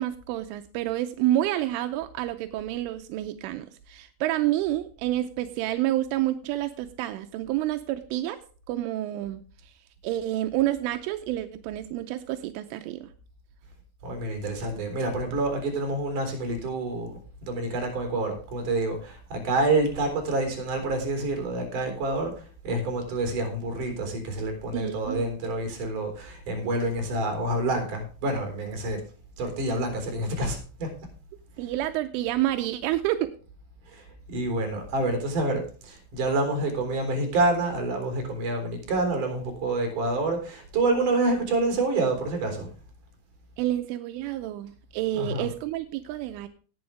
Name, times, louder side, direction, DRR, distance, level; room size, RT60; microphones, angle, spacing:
voice 1, 0.0-8.4 8.7-9.4 10.0-13.1 24.7-25.3 31.6-33.3 43.6-46.5, right 14 dB, 85° right, 8 dB, 3.2 m, -29 dB
voice 2, 14.0-29.0 29.4-30.9 33.9-42.7 45.1-45.5, right 2 dB, 45° right, 4 dB, 4.7 m, -28 dB
18.5 x 7.9 x 3.3 m, 0.39 s
omnidirectional pair, 5.6 m